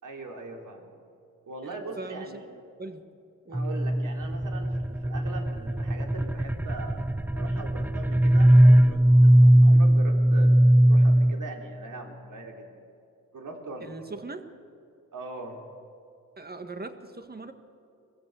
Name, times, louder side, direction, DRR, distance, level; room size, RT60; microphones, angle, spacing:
voice 1, 0.0-0.9 1.4-2.5 3.5-10.5 10.9-12.7 13.3-13.9 15.1-15.6, right 2 dB, 70° right, 1 dB, 3.7 m, -41 dB
voice 2, 1.6-2.4 2.8-3.1 3.4-3.7 13.8-14.5 16.4-17.5, right 3 dB, 30° right, 7 dB, 1.7 m, -40 dB
sound 1, 3.5-11.3, right 1 dB, 5° right, 0.4 m, -19 dB
22.5 x 15.5 x 8.5 m, 2.5 s
cardioid pair, 80°, 32 cm